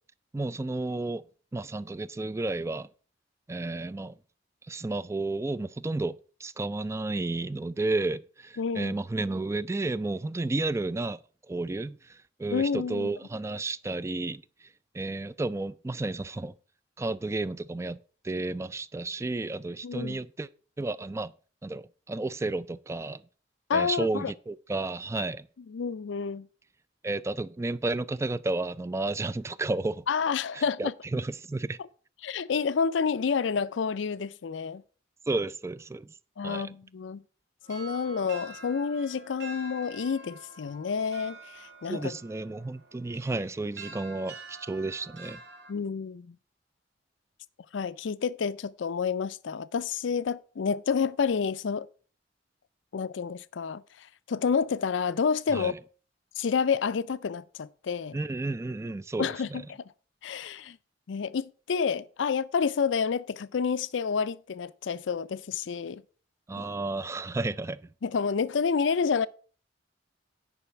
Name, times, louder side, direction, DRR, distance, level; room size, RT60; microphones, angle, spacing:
voice 1, 0.3-1.2 1.5-2.9 3.5-4.1 4.7-6.2 6.4-11.2 11.5-14.4 14.9-16.5 17.0-18.0 18.2-20.5 20.8-21.3 21.6-23.2 23.7-25.5 27.0-30.0 30.5-31.8 35.3-36.1 36.4-36.7 41.9-45.4 55.5-55.8 58.1-59.6 66.5-67.8, right 2 dB, 15° right, 0.3 m, -32 dB
voice 2, 8.6-9.0 12.5-13.1 19.8-20.2 23.7-24.3 25.7-26.5 30.1-30.9 32.2-34.8 36.4-37.2 37.7-42.2 45.7-46.4 47.7-51.9 52.9-55.7 56.4-58.2 59.2-59.8 60.2-60.8 61.1-66.0 66.6-66.7 68.0-69.3, left 6 dB, 80° left, 0.4 m, -29 dB
sound 1, 37.6-45.7, right 2 dB, 70° right, 2.1 m, -47 dB
9.9 x 5.3 x 5.8 m
head